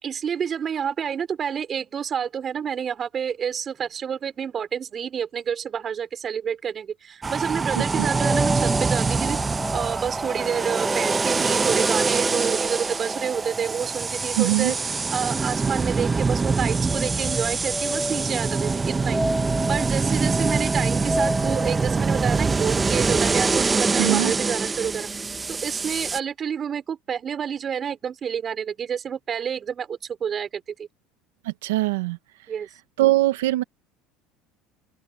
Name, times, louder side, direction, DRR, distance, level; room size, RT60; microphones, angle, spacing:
voice 1, 0.0-9.4 9.7-14.8 15.1-19.2 19.7-25.1 25.5-30.9 32.5-32.7, right 7 dB, 35° right, 4.8 m, -29 dB
sound 1, 7.2-26.2, right 4 dB, 20° right, 1.0 m, -24 dB
voice 2, 7.8-8.1 14.4-14.7 24.0-24.3 31.4-32.2 33.0-33.6, right 18 dB, 90° right, 1.0 m, -22 dB
sound 2, 7.9-23.6, equal, ahead, 5.6 m, -33 dB
open air
supercardioid pair, 100°, 0 cm